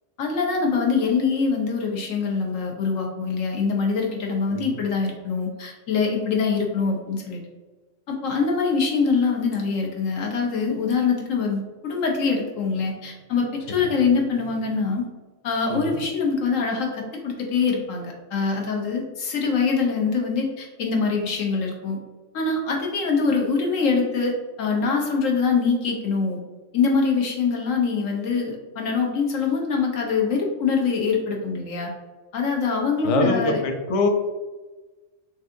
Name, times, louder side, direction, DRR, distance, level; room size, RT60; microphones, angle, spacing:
voice 1, 0.2-7.4 8.1-15.1 15.4-22.0 22.3-26.4 26.7-31.9 32.3-33.6, left 5 dB, 90° left, 0 dB, 1.2 m, -24 dB
voice 2, 15.7-16.0 33.0-34.1, left 2 dB, 60° left, 4 dB, 0.3 m, -24 dB
6.0 x 2.7 x 2.6 m, 1.3 s
omnidirectional pair, 1.3 m